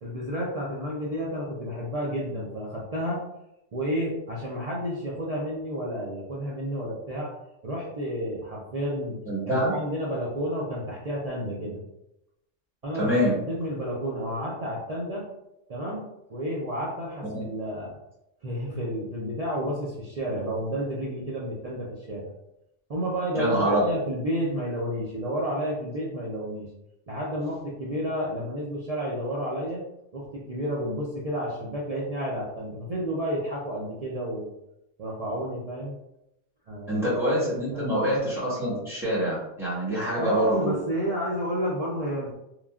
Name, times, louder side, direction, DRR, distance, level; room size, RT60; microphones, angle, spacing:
voice 1, 0.0-3.2 3.7-7.3 7.6-9.2 9.5-11.8 12.8-15.2 15.7-16.0 16.3-18.0 18.4-22.3 22.9-26.7 27.1-29.8 30.1-34.5 35.0-36.0 36.7-37.1 37.4-38.1 40.2-42.3, equal, 65° right, -5 dB, 0.3 m, -31 dB
voice 2, 9.3-9.7 12.9-13.4 17.3-17.4 23.3-23.8 36.9-40.8, equal, ahead, -8 dB, 1.1 m, -25 dB
3.1 x 2.3 x 2.3 m, 0.86 s
omnidirectional pair, 1.3 m